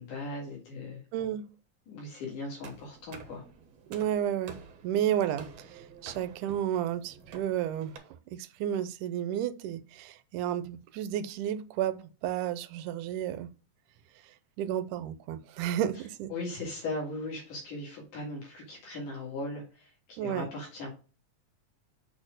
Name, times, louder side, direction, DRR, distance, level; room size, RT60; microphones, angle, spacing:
voice 1, 0.0-1.0 1.9-3.4 16.3-20.9, left 2 dB, 75° left, 3.6 m, -38 dB
voice 2, 1.1-1.5 3.9-13.5 14.2-16.3 20.2-20.5, right 10 dB, 80° right, 2.1 m, -32 dB
sound 1, 2.6-8.0, right 5 dB, 60° right, 2.0 m, -49 dB
6.6 x 4.3 x 6.3 m
omnidirectional pair, 3.7 m